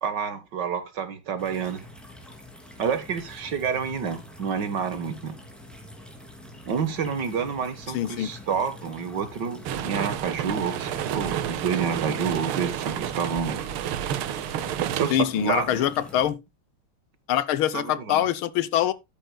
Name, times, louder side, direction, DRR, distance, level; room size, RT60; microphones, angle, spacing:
voice 1, 0.0-1.8 2.8-5.4 6.7-13.6 14.9-15.9 17.7-18.2, right 6 dB, 60° right, 1.9 m, -29 dB
sound 1, 1.4-16.3, left 1 dB, ahead, 2.8 m, -45 dB
voice 2, 7.9-8.3 15.1-16.4 17.3-18.9, left 11 dB, 80° left, 1.6 m, -24 dB
sound 2, 9.7-15.1, right 10 dB, 85° right, 1.7 m, -30 dB
13.0 x 9.2 x 2.3 m
omnidirectional pair, 2.3 m